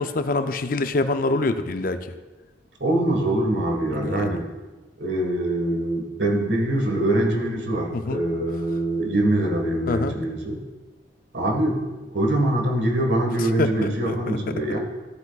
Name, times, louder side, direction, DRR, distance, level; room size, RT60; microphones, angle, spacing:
voice 1, 0.0-2.0 3.9-4.3 7.9-8.2 9.9-10.1 13.6-14.4, left 2 dB, 50° left, 9 dB, 0.5 m, -25 dB
voice 2, 2.8-4.4 5.0-10.6 11.3-14.8, right 1 dB, 70° right, 1 dB, 1.6 m, -23 dB
13.5 x 8.0 x 2.4 m, 1.2 s
head